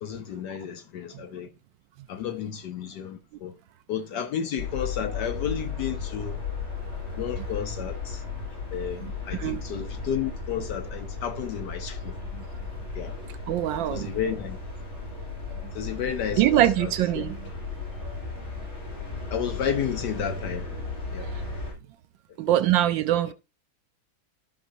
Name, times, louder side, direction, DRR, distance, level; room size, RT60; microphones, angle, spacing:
voice 1, 0.0-1.5 2.1-3.5 3.9-6.4 7.2-8.2 8.7-12.2 12.9-13.1 13.9-14.6 15.7-16.9 17.2-17.3 19.3-20.7 21.1-21.3, left 8 dB, 70° left, 1.1 m, -32 dB
sound 1, 4.6-21.7, left 4 dB, 85° left, 7.5 m, -35 dB
voice 2, 9.0-9.6 12.3-12.4 13.5-14.1 16.4-17.5 21.2-21.4 22.4-23.3, right 13 dB, 75° right, 1.2 m, -24 dB
14.0 x 5.7 x 2.6 m
omnidirectional pair, 2.3 m